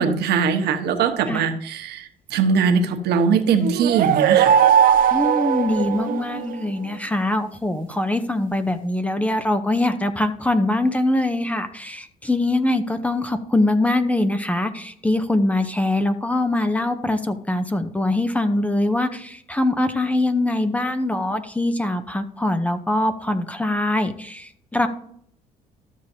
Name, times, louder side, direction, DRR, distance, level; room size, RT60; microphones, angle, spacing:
voice 1, 0.0-4.6, right 6 dB, 75° right, 6 dB, 1.2 m, -21 dB
sound 1, 3.6-6.5, right 9 dB, 55° right, 0.6 m, -18 dB
voice 2, 5.1-24.9, left 1 dB, 10° left, 8 dB, 0.7 m, -23 dB
13.0 x 6.6 x 2.8 m, 0.67 s
cardioid pair, 110°, 17 cm